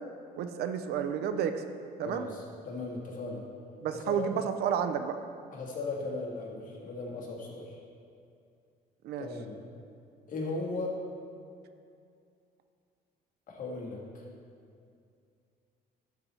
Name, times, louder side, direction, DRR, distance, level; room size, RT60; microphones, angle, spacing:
voice 1, 0.3-1.6 2.0-2.3 3.8-5.2 9.0-9.3, right 8 dB, 70° right, 9 dB, 0.5 m, -31 dB
voice 2, 2.0-3.4 3.9-4.2 5.5-7.8 9.2-9.6 10.3-11.0 13.5-14.2, left 3 dB, 50° left, -2 dB, 1.7 m, -37 dB
12.0 x 4.2 x 4.3 m, 2.4 s
cardioid pair, 110°, 17 cm